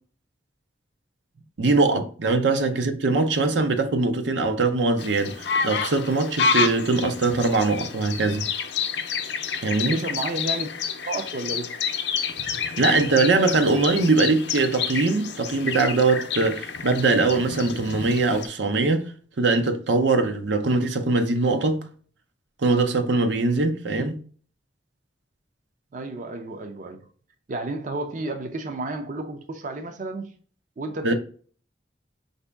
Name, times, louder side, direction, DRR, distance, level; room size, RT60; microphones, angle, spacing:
voice 1, 1.6-8.5 9.6-10.0 12.8-19.1 19.4-21.8 22.6-24.1 31.0-31.1, right 3 dB, 85° right, 0.7 m, -22 dB
sound 1, 5.0-18.5, left 6 dB, 70° left, 0.5 m, -29 dB
voice 2, 9.8-10.7 11.0-11.8 23.9-24.0 25.9-27.1 27.5-30.3 30.8-31.1, right 2 dB, 45° right, 0.5 m, -32 dB
5.0 x 2.7 x 3.4 m
head